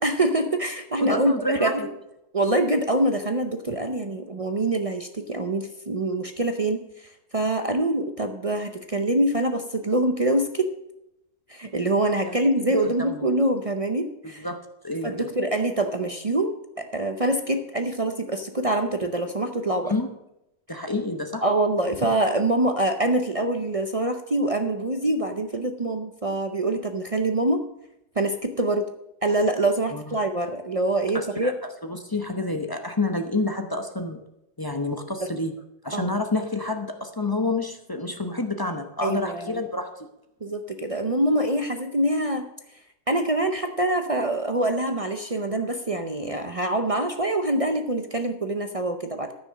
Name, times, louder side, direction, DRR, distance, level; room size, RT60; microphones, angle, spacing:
voice 1, 0.0-1.8 2.3-10.7 11.5-14.5 15.0-19.9 21.4-27.6 28.2-28.9 29.2-31.5 35.2-35.3 35.9-36.1 39.0-39.6 40.4-42.5 43.1-49.3, right 1 dB, 45° right, 6 dB, 0.4 m, -25 dB
voice 2, 1.0-1.9 12.2-12.4 12.7-13.1 14.2-14.6 14.8-15.3 19.8-20.1 20.7-21.4 29.9-30.2 31.1-31.5 31.8-34.2 34.6-35.5 35.8-40.1, left 2 dB, 20° left, 5 dB, 0.7 m, -28 dB
13.5 x 6.1 x 6.4 m, 0.86 s
omnidirectional pair, 1.7 m